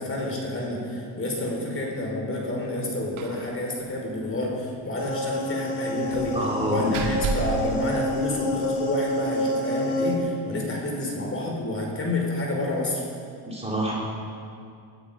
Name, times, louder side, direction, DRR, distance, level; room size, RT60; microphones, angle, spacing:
voice 1, 0.0-13.0, left 2 dB, 30° left, -1 dB, 5.1 m, -29 dB
Slam, 3.2-3.5 3.8-3.9 4.2-4.3 6.1-8.7, right 5 dB, 85° right, 2.2 m, -33 dB
sound 1, 5.0-10.2, left 1 dB, 60° left, 3.1 m, -28 dB
voice 2, 6.3-7.2 13.5-13.9, right 1 dB, 15° right, -5 dB, 3.6 m, -26 dB
20.0 x 12.5 x 5.3 m, 2.3 s
supercardioid pair, 95°, 46 cm